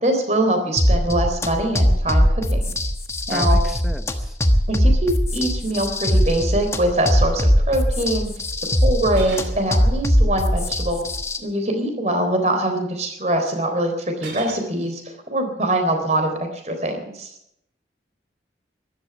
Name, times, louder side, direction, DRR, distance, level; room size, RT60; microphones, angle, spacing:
voice 1, 0.0-2.7 3.3-3.7 4.7-8.3 8.8-11.0 11.4-17.3, right 1 dB, 40° right, 5 dB, 3.8 m, -23 dB
sound 1, 0.8-11.4, equal, 15° left, 1.3 m, -20 dB
voice 2, 3.3-4.4, equal, ahead, 9 dB, 0.9 m, -34 dB
sound 2, 6.5-6.6 9.0-9.6 10.8-11.3 14.1-14.7, right 3 dB, 85° right, 3.6 m, -38 dB
14.5 x 12.5 x 8.2 m, 0.76 s
head